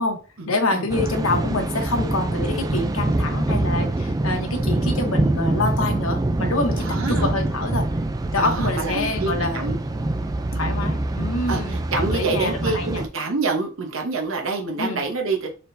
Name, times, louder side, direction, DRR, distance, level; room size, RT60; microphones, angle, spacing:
voice 1, 0.5-7.9 8.3-9.7 10.5-13.0 14.8-15.0, left 2 dB, 85° left, 3 dB, 1.0 m, -26 dB
Thunder, 0.9-13.1, right 2 dB, 20° right, 0.3 m, -24 dB
voice 2, 6.8-7.3 8.4-9.8 10.5-10.7 11.5-15.5, right 3 dB, 75° right, 2 dB, 1.0 m, -27 dB
4.3 x 3.6 x 2.6 m, 0.34 s
head